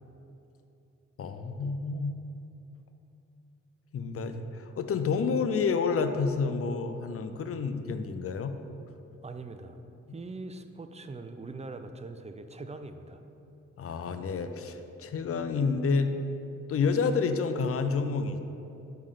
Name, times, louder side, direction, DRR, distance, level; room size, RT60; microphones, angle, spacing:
voice 1, 1.2-2.2 3.9-8.5 13.8-16.1 16.7-18.4, left 5 dB, 50° left, 8 dB, 0.5 m, -29 dB
voice 2, 9.2-9.8 10.1-13.2, right 3 dB, 25° right, 8 dB, 0.4 m, -42 dB
5.6 x 3.7 x 4.9 m, 2.9 s
cardioid pair, 50°, 29 cm